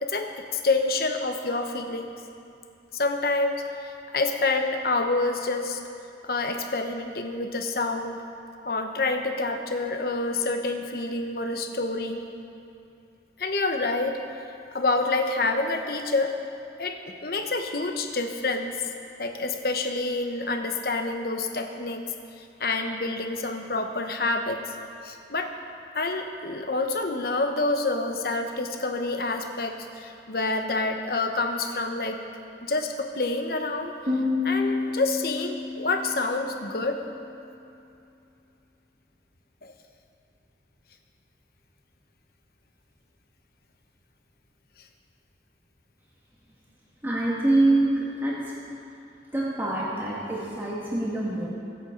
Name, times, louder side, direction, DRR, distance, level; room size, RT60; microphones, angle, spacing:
voice 1, 0.0-2.1 2.9-5.8 6.2-8.2 8.7-12.2 13.4-14.2 14.7-16.4 16.8-18.8 19.2-22.0 22.4-24.6 25.0-25.5 25.9-32.2 32.6-33.9 34.4-37.0 39.6-39.7, left 3 dB, 55° left, 5 dB, 1.0 m, -27 dB
Piano, 34.1-37.5, left 3 dB, 40° right, 3.4 m, -30 dB
voice 2, 47.0-48.5 49.3-51.5, right 2 dB, 10° right, -7 dB, 2.0 m, -25 dB
22.5 x 8.1 x 3.9 m, 2.7 s
head